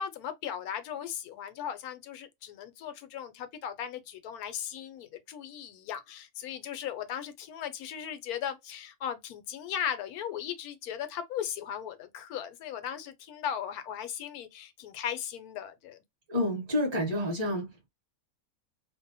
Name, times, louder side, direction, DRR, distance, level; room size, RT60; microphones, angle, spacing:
voice 1, 0.0-16.0, left 9 dB, 75° left, 1.1 m, -37 dB
voice 2, 16.3-17.9, left 1 dB, 20° right, 1.0 m, -29 dB
2.6 x 2.0 x 2.6 m
omnidirectional pair, 1.6 m